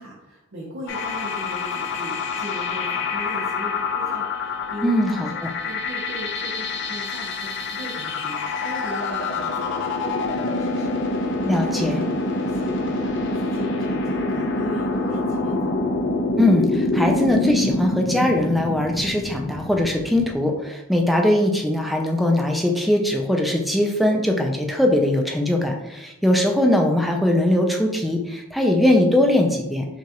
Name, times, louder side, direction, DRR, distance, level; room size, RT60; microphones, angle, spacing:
voice 1, 0.0-12.1 12.4-15.7, equal, 70° right, -5 dB, 1.0 m, -37 dB
sound 1, 0.9-20.3, left 3 dB, 60° left, 0.6 m, -26 dB
voice 2, 4.8-5.3 11.4-12.0 16.4-29.9, left 1 dB, ahead, 1 dB, 0.4 m, -20 dB
6.0 x 2.5 x 2.9 m, 0.94 s
head